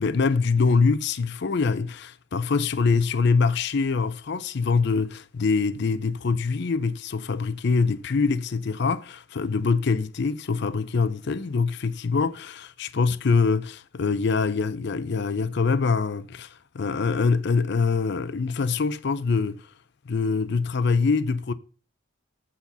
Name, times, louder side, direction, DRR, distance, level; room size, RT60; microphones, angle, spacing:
voice 1, 0.0-19.6 20.1-21.5, left 4 dB, 55° left, 0.5 m, -24 dB
8.2 x 4.2 x 5.4 m
head